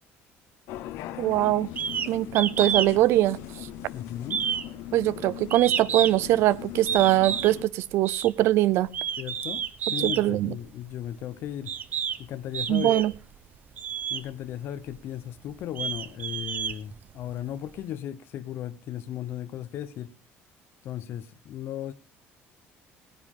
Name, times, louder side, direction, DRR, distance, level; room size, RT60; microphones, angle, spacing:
sound 1, 0.7-7.6, left 13 dB, 85° left, 1.0 m, -40 dB
voice 1, 1.2-1.7 2.1-3.4 4.9-8.9 10.0-10.5 12.7-13.1, right 15 dB, 70° right, 0.6 m, -22 dB
sound 2, 1.8-2.1 2.3-2.9 3.2-3.9 4.3-6.3 6.9-7.6 8.0-8.3 8.9-10.2 11.0-11.1 11.7-12.2 12.5-13.2 13.8-14.2 14.9-15.0 15.5-17.3, right 8 dB, 40° right, 0.8 m, -30 dB
voice 2, 3.9-4.5 9.2-11.7 12.2-13.0 14.1-20.1 20.8-21.9, left 11 dB, 60° left, 0.8 m, -36 dB
19.0 x 9.8 x 3.7 m
cardioid pair, 145°, 5 cm